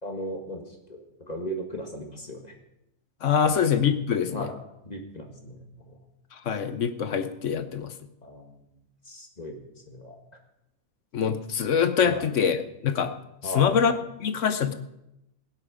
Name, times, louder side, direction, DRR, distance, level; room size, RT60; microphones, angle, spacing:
voice 1, 0.0-2.5 3.5-3.6 4.3-4.5 4.9-6.0 8.2-9.6 9.9-10.2 12.1-12.3 13.4-13.8, equal, 30° left, 2 dB, 1.8 m, -37 dB
voice 2, 3.2-4.5 6.3-7.9 11.1-13.1 13.4-13.9 14.2-14.7, left 7 dB, 60° left, 10 dB, 1.1 m, -24 dB
17.0 x 10.5 x 5.1 m, 0.88 s
omnidirectional pair, 1.5 m